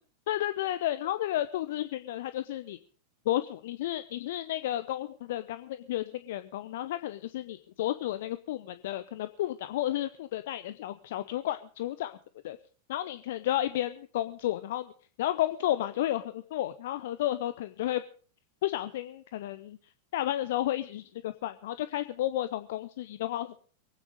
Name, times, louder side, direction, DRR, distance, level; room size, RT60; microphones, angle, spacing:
voice 1, 0.3-2.8 3.3-12.2 12.4-12.6 12.9-14.9 15.2-18.0 18.6-19.8 20.1-23.6, left 13 dB, 55° left, 12 dB, 0.7 m, -32 dB
23.0 x 9.3 x 5.0 m, 0.42 s
figure-of-eight pair, 90°, 0 cm